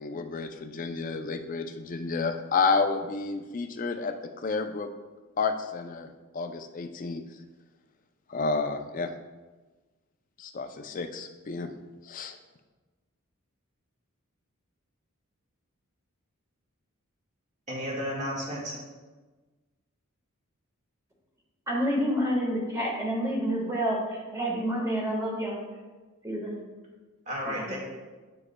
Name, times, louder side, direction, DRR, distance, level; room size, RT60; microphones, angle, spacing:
voice 1, 0.0-4.9 5.4-7.2 8.3-9.1 10.4-11.7 12.0-12.4, left 4 dB, 40° left, 7 dB, 0.4 m, -30 dB
voice 2, 17.7-18.8 27.2-27.8, equal, 35° right, -3 dB, 1.7 m, -33 dB
voice 3, 21.7-25.6 26.2-26.6 27.4-27.8, equal, 15° right, -3 dB, 1.4 m, -29 dB
9.5 x 4.9 x 2.2 m, 1.3 s
head